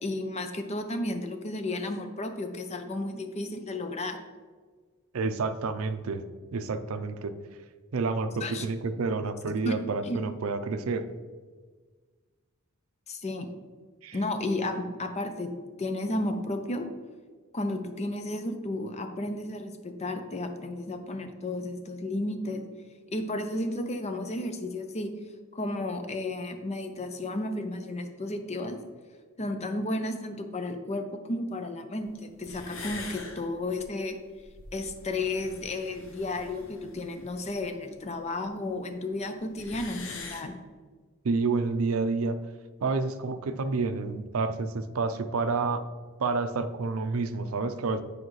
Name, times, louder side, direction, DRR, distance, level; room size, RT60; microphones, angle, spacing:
voice 1, 0.0-4.3 8.4-8.7 9.7-9.8 10.0-10.2 13.1-13.5 14.1-15.5 15.8-16.9 17.5-22.6 23.1-25.1 25.5-28.8 29.4-34.2 34.7-40.6, left 2 dB, 30° left, 7 dB, 0.6 m, -33 dB
voice 2, 5.1-6.2 6.5-7.3 7.9-11.1 14.0-14.2 41.2-42.4 42.8-45.8 46.2-48.0, right 4 dB, 75° right, 10 dB, 0.5 m, -29 dB
sound 1, 32.1-32.2 32.4-38.4 38.7-38.8 39.0-39.1 39.3-40.4, left 3 dB, 65° left, 0.9 m, -44 dB
9.5 x 4.9 x 3.1 m, 1.5 s
head